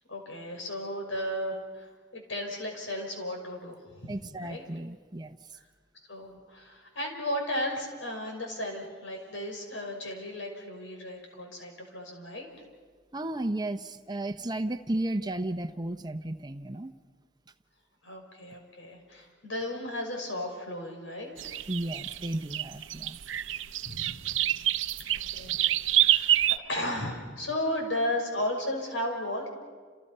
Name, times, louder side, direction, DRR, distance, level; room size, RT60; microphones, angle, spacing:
voice 1, 0.1-4.2 4.4-4.6 6.1-12.5 18.0-21.5 23.8-24.7 25.0-25.6 25.9-26.4 26.7-29.5, left 1 dB, 80° left, 2 dB, 6.1 m, -35 dB
voice 2, 4.1-5.4 13.1-16.9 21.7-23.2, right 1 dB, 20° right, 9 dB, 1.0 m, -33 dB
sound 1, 21.4-26.6, right 12 dB, 80° right, 0.7 m, -27 dB
29.5 x 29.0 x 5.6 m, 1.5 s
head